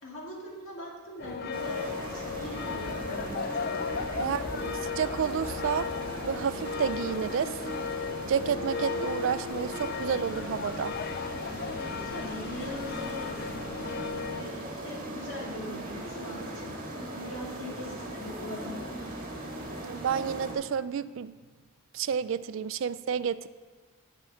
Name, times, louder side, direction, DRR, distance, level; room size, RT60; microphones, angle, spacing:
voice 1, 0.0-3.3 4.2-4.7 11.8-13.7 14.4-19.1, left 1 dB, 65° left, -3 dB, 2.3 m, -41 dB
sound 1, 1.2-14.5, left 5 dB, 45° left, 0.3 m, -36 dB
sound 2, 1.5-20.5, right 1 dB, 40° right, 1.8 m, -39 dB
voice 2, 5.0-5.9 6.2-7.6 8.3-10.9 19.8-21.3 21.9-23.5, right 7 dB, 60° right, 15 dB, 0.3 m, -30 dB
7.7 x 7.4 x 6.3 m, 1.4 s
head